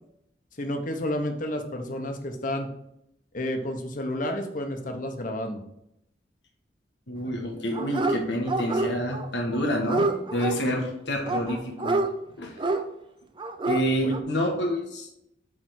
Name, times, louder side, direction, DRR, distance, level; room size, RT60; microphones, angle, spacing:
voice 1, 0.6-2.7 3.3-5.6 14.0-14.2, left 1 dB, 50° left, 4 dB, 1.1 m, -30 dB
voice 2, 7.1-12.0 12.4-12.6 13.6-15.1, equal, 75° left, 0 dB, 1.4 m, -28 dB
Dog, 7.7-8.2 8.5-9.3 9.5-10.6 11.3-12.1 12.6-12.8 13.4-13.8 14.1-14.2, right 2 dB, 30° right, 0.6 m, -27 dB
8.6 x 3.5 x 6.2 m, 0.79 s
head